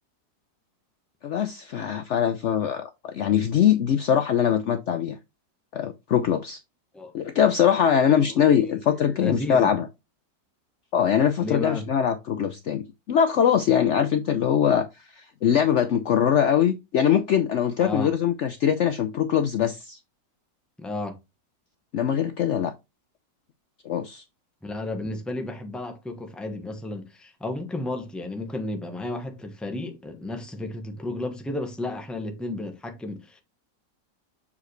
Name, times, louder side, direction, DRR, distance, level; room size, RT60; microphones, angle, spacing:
voice 1, 1.2-5.2 5.7-6.6 7.1-9.9 10.9-14.9 15.2-20.0 21.9-22.7 23.8-24.2, left 8 dB, 80° left, 0.6 m, -22 dB
voice 2, 8.3-8.6 9.0-9.7 11.4-11.9 17.8-18.1 20.8-21.2 24.6-33.4, left 2 dB, ahead, 0.8 m, -33 dB
7.0 x 4.8 x 3.2 m
omnidirectional pair, 1.9 m